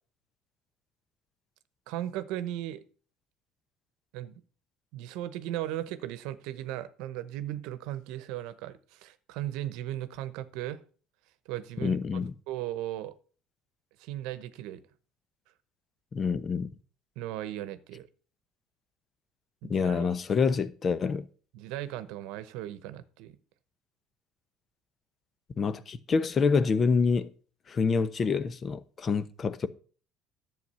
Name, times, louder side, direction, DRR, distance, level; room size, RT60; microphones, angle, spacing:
voice 1, 1.9-2.8 4.1-4.3 4.9-10.8 11.5-12.0 12.5-13.1 14.0-14.8 17.2-18.1 19.6-20.1 21.5-23.4, right 13 dB, 75° right, 0.9 m, -37 dB
voice 2, 11.8-12.3 16.1-16.7 19.7-21.3 25.6-27.3 27.7-29.7, left 5 dB, 40° left, 0.9 m, -27 dB
10.5 x 7.7 x 5.6 m
supercardioid pair, 80°, 0 cm